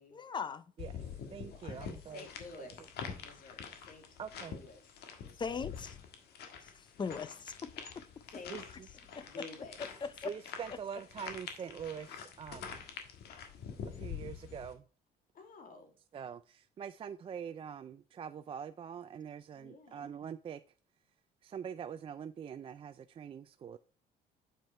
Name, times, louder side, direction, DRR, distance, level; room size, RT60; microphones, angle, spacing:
voice 1, 0.1-0.6 5.4-6.0 6.6-8.1 9.1-9.3 10.0-10.3, left 5 dB, 25° left, 0.5 m, -39 dB
sound 1, 0.8-14.7, left 7 dB, 75° left, 1.5 m, -46 dB
voice 2, 0.8-2.3 2.6-2.7 4.2-4.6 8.5-8.6 10.2-12.9 13.9-14.8 16.1-20.6 21.4-23.8, right 7 dB, 35° right, 0.4 m, -44 dB
voice 3, 1.5-2.7 3.2-4.1 4.4-4.8 5.2-5.6 8.3-8.6 9.2-9.8 15.3-15.9 19.5-20.0, left 3 dB, 55° left, 2.4 m, -51 dB
7.5 x 5.4 x 4.4 m
cardioid pair, 110°, 17 cm